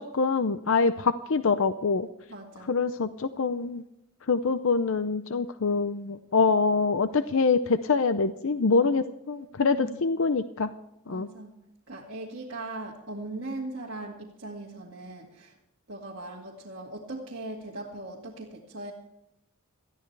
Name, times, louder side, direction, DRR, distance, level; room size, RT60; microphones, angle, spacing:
voice 1, 0.0-2.1 2.7-3.8 4.3-10.7 11.1-11.3, left 4 dB, 65° left, 11 dB, 0.6 m, -25 dB
voice 2, 2.3-2.7 9.7-10.0 11.1-11.6 11.9-15.6 15.9-18.9, right 2 dB, 55° right, -4 dB, 2.1 m, -39 dB
19.0 x 13.5 x 3.3 m, 0.86 s
head